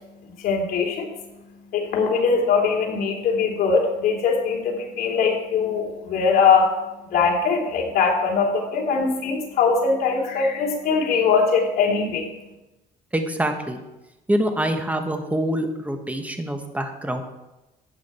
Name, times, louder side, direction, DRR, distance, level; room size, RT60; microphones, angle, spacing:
voice 1, 0.2-12.3, left 5 dB, 65° left, -1 dB, 3.4 m, -22 dB
voice 2, 13.1-13.8 14.3-17.2, right 1 dB, 10° right, 5 dB, 1.5 m, -25 dB
12.0 x 9.0 x 4.5 m, 1.0 s
cardioid pair, 110°, 17 cm